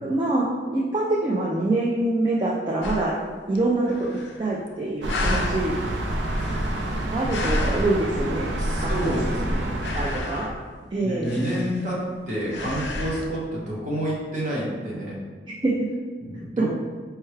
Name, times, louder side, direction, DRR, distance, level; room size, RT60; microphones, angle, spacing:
voice 1, 0.0-3.2 3.5-4.1 4.4-5.8 7.1-9.2 9.9-10.5 10.9-11.3 15.6-15.9, right 2 dB, 25° right, -5 dB, 0.3 m, -25 dB
sound 1, 2.8-3.2 3.5-3.6 3.8-4.7 5.1-5.7 6.2-8.1 8.6-9.5 9.8-10.7 11.2-12.1 12.5-13.3, left 2 dB, 70° left, 0.4 m, -32 dB
sound 2, 5.0-10.2, right 1 dB, 85° right, 0.5 m, -28 dB
voice 2, 8.6-9.7 10.0-10.1 11.0-15.2 16.2-16.7, equal, 45° right, -6 dB, 1.0 m, -29 dB
4.5 x 2.2 x 3.2 m, 1.5 s
head